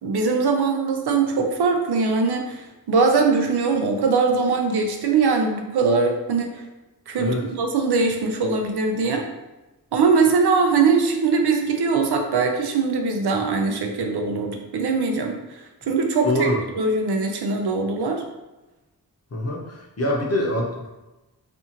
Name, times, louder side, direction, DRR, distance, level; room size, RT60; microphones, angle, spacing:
voice 1, 0.0-6.6 7.1-9.3 9.9-16.5 16.7-18.2, right 4 dB, 85° right, 3 dB, 0.5 m, -21 dB
voice 2, 16.2-16.6 19.3-20.9, left 1 dB, 40° left, -2 dB, 0.7 m, -24 dB
2.5 x 2.4 x 2.8 m, 1.0 s
wide cardioid pair, 105°, 38 cm